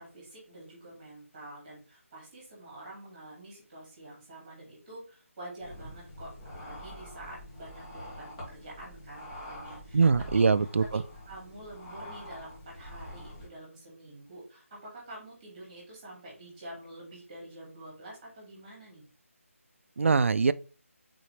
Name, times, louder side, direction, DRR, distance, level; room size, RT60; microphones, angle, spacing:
voice 1, 0.0-6.3 6.6-10.1 10.3-11.0 11.3-19.1, right 1 dB, 20° right, 2.3 m, -47 dB
sound 1, 5.6-13.5, equal, 25° left, 2.0 m, -45 dB
voice 2, 9.9-11.0 20.0-20.5, right 4 dB, 60° right, 0.3 m, -23 dB
4.2 x 3.9 x 3.2 m
figure-of-eight pair, 175°, 8 cm